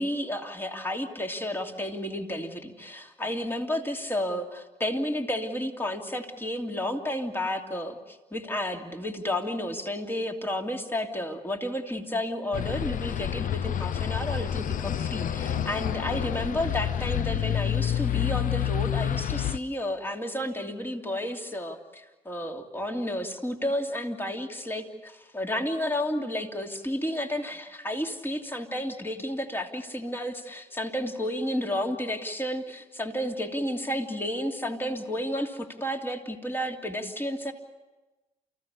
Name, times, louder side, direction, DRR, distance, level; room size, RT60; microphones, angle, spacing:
voice 1, 0.0-37.5, left 1 dB, 15° left, 3 dB, 2.9 m, -31 dB
sound 1, 12.5-19.6, left 10 dB, 55° left, 0.8 m, -28 dB
30.0 x 15.5 x 8.3 m, 1.1 s
supercardioid pair, 65°, 16 cm